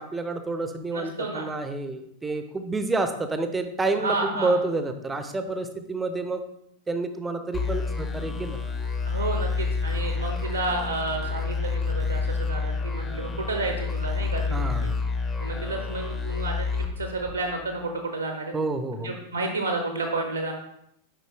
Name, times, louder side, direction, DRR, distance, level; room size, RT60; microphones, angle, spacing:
voice 1, 0.0-6.4 6.9-8.6 14.5-15.0 18.5-19.1, right 3 dB, 10° right, 8 dB, 0.6 m, -29 dB
voice 2, 0.9-1.5 4.0-4.6 9.1-14.9 15.4-18.5 19.0-20.5, right 2 dB, 85° right, 3 dB, 0.9 m, -31 dB
sound 1, 7.5-17.8, left 4 dB, 20° left, 0.9 m, -29 dB
7.4 x 5.2 x 3.2 m, 0.75 s
figure-of-eight pair, 90°, 0 cm